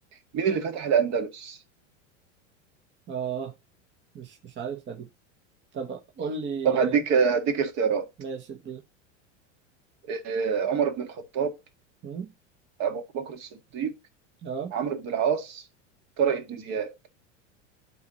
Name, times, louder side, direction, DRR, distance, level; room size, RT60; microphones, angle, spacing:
voice 1, 0.3-1.6 6.6-8.1 10.1-11.6 12.8-13.9 14.7-15.6 16.2-16.9, right 6 dB, 45° right, 1.8 m, -26 dB
voice 2, 3.1-3.5 4.1-5.1 5.7-7.0 8.2-8.8 12.0-12.3 14.4-14.7, right 6 dB, 30° right, 1.1 m, -34 dB
12.0 x 4.2 x 3.0 m
hypercardioid pair, 110°, 37 cm